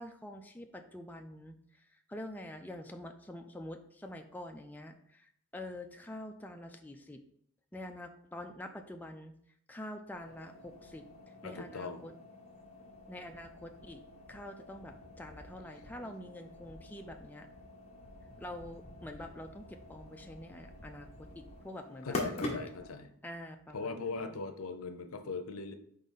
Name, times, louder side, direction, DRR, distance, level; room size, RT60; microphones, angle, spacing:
voice 1, 0.0-7.2 7.7-9.3 9.7-12.1 13.1-14.0 14.3-17.5 18.4-22.2 23.2-24.3, left 1 dB, 10° left, 4 dB, 0.4 m, -46 dB
sound 1, 10.1-23.0, left 1 dB, 30° left, 1.3 m, -46 dB
voice 2, 11.4-12.0 16.0-16.1 22.0-23.1 23.7-25.7, left 4 dB, 80° left, 8 dB, 0.7 m, -39 dB
5.0 x 3.9 x 5.5 m, 0.66 s
head